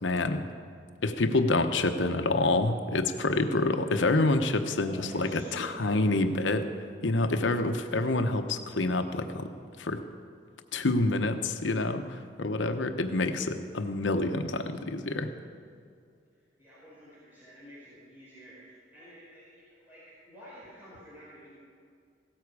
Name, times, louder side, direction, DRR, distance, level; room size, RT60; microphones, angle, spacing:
voice 1, 0.0-0.5 1.0-6.7 7.0-9.5 9.8-10.0 10.7-15.3, left 2 dB, 90° left, 7 dB, 0.9 m, -27 dB
voice 2, 4.8-6.3 16.4-21.6, equal, 10° right, -9 dB, 5.0 m, -50 dB
17.0 x 13.5 x 4.8 m, 2.3 s
head